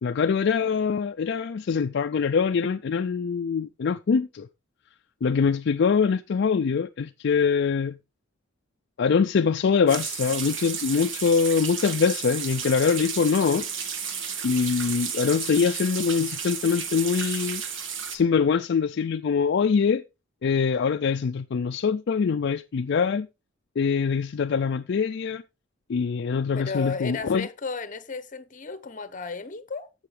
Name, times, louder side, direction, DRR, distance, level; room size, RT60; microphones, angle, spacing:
voice 1, 0.0-4.5 5.2-8.0 9.0-13.6 14.4-17.6 18.1-20.0 20.4-23.3 23.8-25.4 25.9-27.5, left 5 dB, 60° left, 0.4 m, -23 dB
sound 1, 9.9-18.2, right 7 dB, 70° right, 1.5 m, -32 dB
voice 2, 26.5-29.9, left 4 dB, 40° left, 0.9 m, -34 dB
14.5 x 5.7 x 3.3 m
head